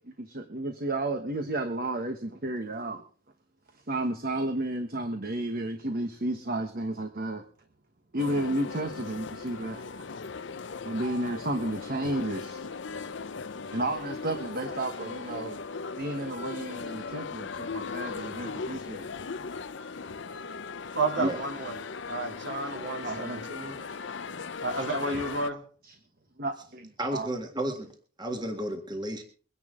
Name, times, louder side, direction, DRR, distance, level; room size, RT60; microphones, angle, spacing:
voice 1, 0.2-3.0 3.9-7.4 8.1-10.0 10.8-12.7 13.7-15.6 16.0-19.1 19.8-19.9 21.2-21.3 23.0-23.4 26.4-27.3, right 1 dB, 50° right, 6 dB, 1.3 m, -32 dB
sound 1, 8.2-25.5, left 4 dB, 65° left, 0.7 m, -38 dB
voice 2, 20.9-21.8 22.0-23.8 24.6-25.6, right 2 dB, 65° right, 3 dB, 2.9 m, -31 dB
voice 3, 27.0-29.2, right 1 dB, 20° right, 4 dB, 1.7 m, -33 dB
23.0 x 10.5 x 3.8 m, 0.40 s
head